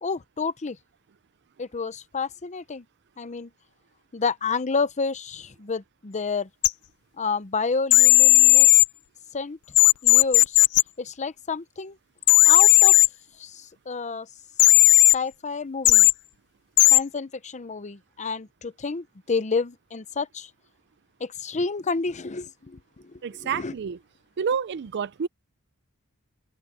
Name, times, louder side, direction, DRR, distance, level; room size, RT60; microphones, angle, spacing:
voice 1, 0.0-0.8 1.6-2.8 3.2-3.5 4.1-6.5 7.2-8.7 9.3-9.6 10.0-10.6 11.0-12.0 12.4-13.0 13.4-14.3 15.1-16.1 16.9-20.5 21.2-23.7, left 4 dB, 35° left, 0.7 m, -30 dB
sound 1, 6.6-6.7 7.9-8.9 9.8-10.8 12.2-13.1 14.6-15.2 15.8-16.1 16.8-17.0, left 20 dB, 75° left, 0.4 m, -14 dB
voice 2, 23.2-24.0 24.4-25.3, right 6 dB, 50° right, 0.4 m, -28 dB
open air
head